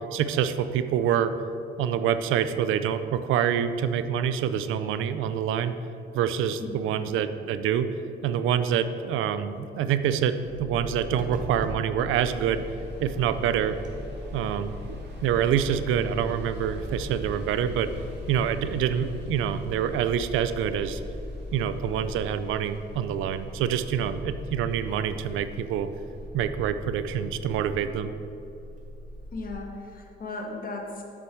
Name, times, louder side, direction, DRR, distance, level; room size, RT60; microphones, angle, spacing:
voice 1, 0.0-1.3 1.8-5.7 6.1-7.9 8.2-12.6 13.0-13.8 14.3-17.9 18.3-21.0 21.5-25.9 26.3-28.1, right 9 dB, 85° right, 11 dB, 0.5 m, -26 dB
sound 1, 10.4-29.5, left 1 dB, 40° right, 1.7 m, -40 dB
sound 2, 12.1-26.3, right 1 dB, 60° right, 2.1 m, -45 dB
voice 2, 29.3-31.0, left 2 dB, 45° left, 1 dB, 1.6 m, -36 dB
7.8 x 6.1 x 6.3 m, 2.8 s
cardioid pair, 90°, 20 cm